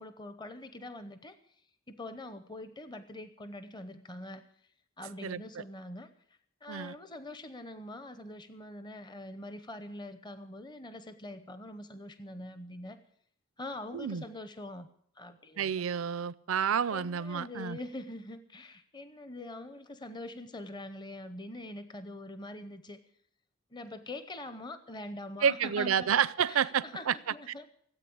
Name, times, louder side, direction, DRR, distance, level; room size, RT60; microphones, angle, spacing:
voice 1, 0.0-1.4 1.9-4.5 5.0-6.1 6.6-13.0 13.6-14.9 15.2-15.9 16.9-23.0 23.7-26.1 26.5-27.7, left 1 dB, 20° left, 0.7 m, -44 dB
voice 2, 13.9-14.2 15.6-17.8 25.4-27.1, right 7 dB, 80° right, 0.5 m, -29 dB
16.5 x 8.5 x 8.6 m
head